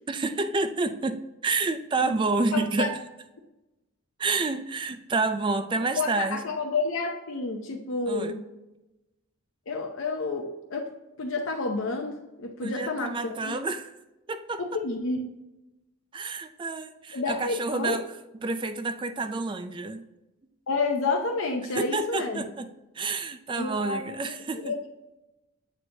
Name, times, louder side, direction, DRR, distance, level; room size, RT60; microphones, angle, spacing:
voice 1, 0.1-3.0 4.2-6.5 8.1-8.3 12.6-13.9 14.3-14.6 16.1-18.1 18.4-20.1 21.7-24.7, right 3 dB, 20° right, 10 dB, 0.3 m, -29 dB
voice 2, 2.5-2.9 5.9-8.5 9.7-10.9 11.2-13.6 14.6-15.3 17.1-18.0 20.7-22.4 23.5-24.8, left 3 dB, 65° left, 2 dB, 0.6 m, -30 dB
7.8 x 4.5 x 2.7 m, 0.98 s
head